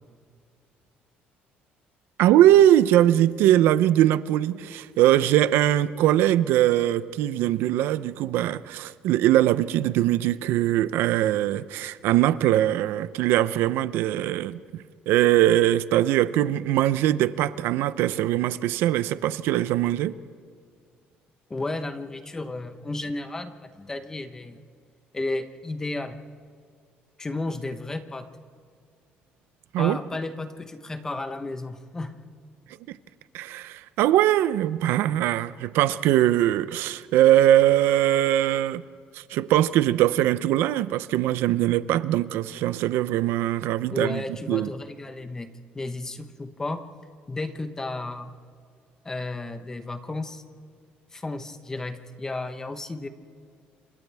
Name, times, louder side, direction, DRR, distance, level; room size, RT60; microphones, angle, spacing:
voice 1, 2.2-14.6 15.1-20.1 29.7-30.0 32.9-33.0 33.3-38.8 39.1-44.2 44.5-44.7, right 13 dB, 85° right, 0.6 m, -21 dB
voice 2, 21.5-24.6 25.1-26.2 27.2-28.3 29.8-32.2 43.9-46.8 47.3-48.3 49.0-50.4 51.1-53.1, left 2 dB, 15° left, 1.0 m, -33 dB
29.0 x 26.5 x 3.5 m
cardioid pair, 155°, 4 cm